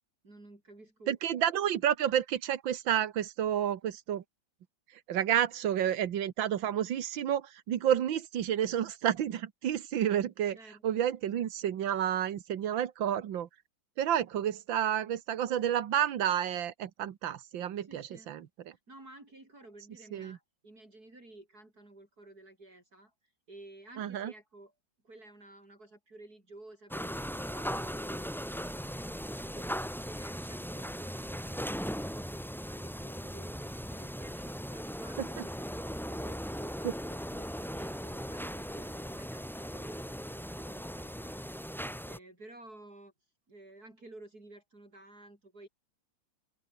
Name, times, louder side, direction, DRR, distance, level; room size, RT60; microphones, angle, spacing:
voice 1, 0.2-1.2 10.5-11.1 17.8-18.3 18.7-24.7 25.0-31.7 32.0-43.1 43.5-45.7, right 2 dB, 50° right, 7.2 m, -53 dB
voice 2, 1.1-4.2 5.1-10.6 10.8-13.5 14.0-18.4 20.1-20.3 24.0-24.3, right 10 dB, 90° right, 1.9 m, -30 dB
sound 1, 26.9-42.2, equal, ahead, 4.3 m, -38 dB
open air
omnidirectional pair, 2.0 m